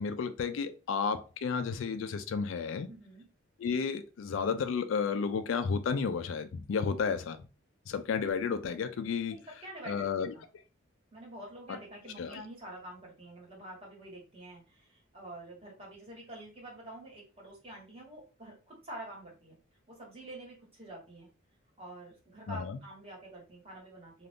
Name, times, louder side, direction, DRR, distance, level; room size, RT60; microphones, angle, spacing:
voice 1, 0.0-2.9 3.6-7.5 7.9-9.4 9.9-10.3 12.2-12.4 22.5-22.8, left 5 dB, 70° left, 0.3 m, -32 dB
voice 2, 2.9-3.2 9.3-10.4 11.1-19.6 19.9-21.3 21.8-24.3, right 1 dB, 30° right, 1.4 m, -47 dB
2.5 x 2.4 x 3.4 m
head